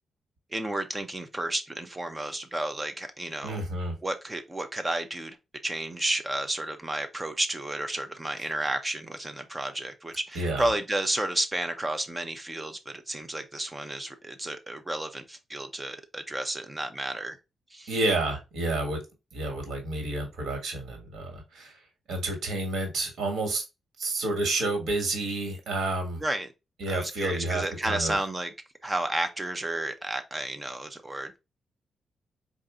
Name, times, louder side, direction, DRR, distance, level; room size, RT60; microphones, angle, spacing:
voice 1, 0.5-3.6 4.0-5.4 5.6-17.4 17.7-17.9 26.2-26.5 26.9-28.5 28.8-31.4, right 1 dB, 15° right, 0.5 m, -32 dB
voice 2, 3.4-4.0 10.3-10.7 17.9-19.0 19.3-21.7 22.1-23.6 24.0-26.2 26.8-28.2, right 2 dB, 85° right, 1.5 m, -30 dB
3.9 x 2.5 x 3.5 m
wide cardioid pair, 160°, 0 cm